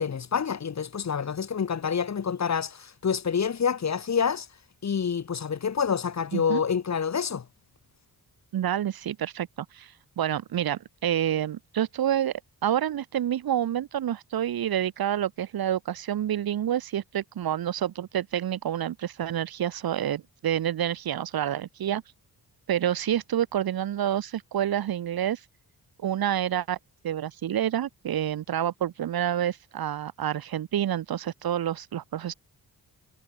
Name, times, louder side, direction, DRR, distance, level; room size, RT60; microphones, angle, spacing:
voice 1, 0.0-4.5 4.8-7.4, left 6 dB, 45° left, 1.2 m, -27 dB
voice 2, 8.5-12.3 12.6-22.0 22.7-25.4 26.0-26.8 27.0-32.3, right 10 dB, 65° right, 0.8 m, -28 dB
wide cardioid pair, 110°, 39 cm